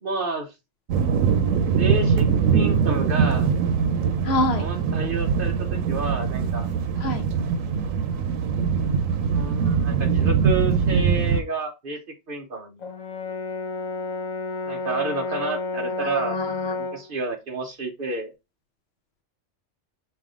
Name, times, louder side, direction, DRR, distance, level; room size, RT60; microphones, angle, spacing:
voice 1, 0.0-0.5 1.8-2.3 2.5-3.5 4.5-6.7 9.3-12.0 12.3-12.8 14.7-16.4 16.6-18.3, right 3 dB, 50° right, 5 dB, 0.8 m, -30 dB
sound 1, 0.9-11.4, right 6 dB, 90° right, 1.0 m, -22 dB
voice 2, 4.2-4.7 7.0-7.2 16.0-16.7, left 2 dB, 60° left, 6 dB, 0.9 m, -26 dB
Brass instrument, 12.8-17.1, left 4 dB, 85° left, 1.3 m, -31 dB
5.5 x 2.6 x 3.6 m, 0.25 s
omnidirectional pair, 1.3 m